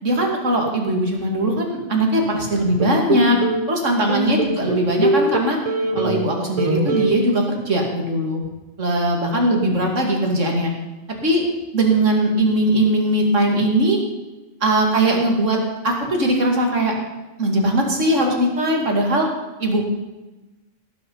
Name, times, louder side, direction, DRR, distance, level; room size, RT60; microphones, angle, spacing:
voice 1, 0.0-3.4 3.7-5.6 5.9-8.4 8.8-10.7 11.1-11.5 11.7-14.0 14.6-15.6 15.8-16.9 17.4-19.3 19.6-19.8, right 1 dB, 90° right, 1 dB, 2.9 m, -20 dB
sound 1, 2.8-3.6 4.1-6.3 6.6-7.1, right 2 dB, 30° right, 1.1 m, -21 dB
18.5 x 9.8 x 5.6 m, 1.1 s
omnidirectional pair, 1.2 m